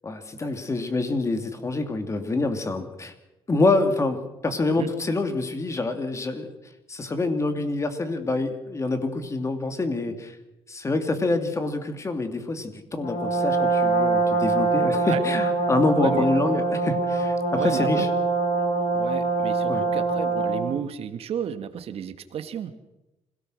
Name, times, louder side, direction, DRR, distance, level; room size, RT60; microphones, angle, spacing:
voice 1, 0.0-3.1 3.5-6.5 6.9-10.4 10.7-18.1 19.7-19.8, left 2 dB, 25° left, 8 dB, 2.7 m, -26 dB
Brass instrument, 13.0-20.8, right 3 dB, 90° left, 4.9 m, -24 dB
voice 2, 16.0-16.3 17.5-18.1 18.7-22.7, right 8 dB, 65° right, 11 dB, 1.6 m, -32 dB
26.5 x 17.5 x 6.4 m, 0.95 s
cardioid pair, 120°, 11 cm